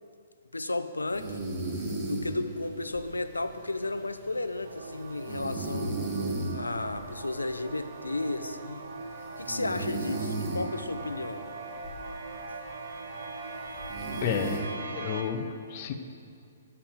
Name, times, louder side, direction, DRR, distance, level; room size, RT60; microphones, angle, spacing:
voice 1, 0.5-1.5 1.8-6.0 6.5-8.9 9.4-11.5 12.5-12.6, left 2 dB, 85° left, 10 dB, 0.6 m, -33 dB
sound 1, 1.1-14.6, right 2 dB, 30° right, 2.6 m, -37 dB
sound 2, 4.6-15.2, right 3 dB, 60° right, 1.1 m, -41 dB
voice 2, 14.2-15.9, left 7 dB, 40° left, 7 dB, 0.8 m, -32 dB
8.4 x 7.6 x 7.9 m, 2.4 s
figure-of-eight pair, 125°, 0 cm